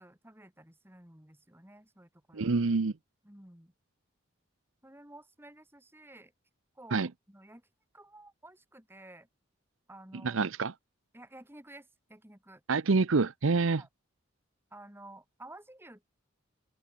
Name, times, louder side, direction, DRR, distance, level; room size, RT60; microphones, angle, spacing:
voice 1, 0.0-2.6 3.2-3.7 4.8-6.3 6.7-7.7 7.9-9.3 9.9-10.5 11.1-12.6 13.6-13.9 14.7-16.1, right 1 dB, 10° right, 2.9 m, -53 dB
voice 2, 2.3-2.9 6.9-7.1 10.2-10.7 12.7-13.8, right 4 dB, 75° right, 0.7 m, -27 dB
head